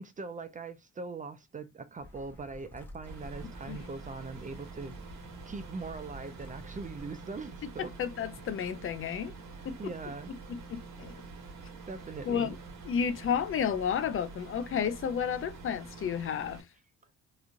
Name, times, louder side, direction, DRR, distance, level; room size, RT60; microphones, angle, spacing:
voice 1, 0.0-5.0 5.4-7.9 9.8-10.3 11.9-12.5, right 4 dB, 25° right, 0.4 m, -41 dB
sound 1, 2.0-7.1, left 1 dB, 5° left, 0.9 m, -50 dB
sound 2, 3.1-16.6, right 4 dB, 75° right, 1.2 m, -47 dB
voice 2, 7.6-9.3 9.6-9.9 10.3-11.2 12.3-12.6 12.9-16.6, left 7 dB, 45° left, 0.4 m, -32 dB
3.0 x 2.4 x 2.4 m
cardioid pair, 90°, 30 cm